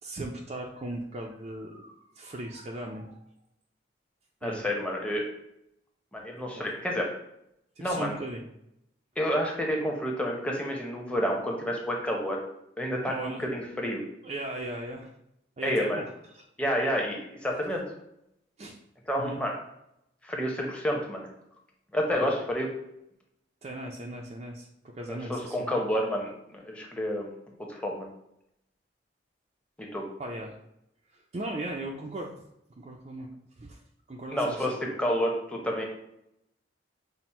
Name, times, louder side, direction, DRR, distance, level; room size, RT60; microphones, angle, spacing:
voice 1, 0.0-3.2 4.4-4.6 6.5-6.7 7.8-8.5 13.0-13.4 14.2-15.1 15.6-16.0 16.3-16.4 18.6-18.8 19.2-19.4 22.1-22.3 23.6-24.7 24.9-25.7 30.2-30.6 31.1-32.3 32.8-33.3 33.6-33.8 34.1-34.7, right 1 dB, 35° right, 0 dB, 0.4 m, -38 dB
voice 2, 4.4-5.2 6.1-7.1 7.8-8.2 9.2-12.4 12.8-14.0 15.6-16.0 16.6-17.8 19.1-19.6 20.2-21.3 21.9-22.7 25.1-27.3 27.7-28.1 29.8-30.0 34.3-35.8, equal, 5° left, -1 dB, 0.7 m, -29 dB
6.0 x 2.1 x 4.1 m, 0.81 s
head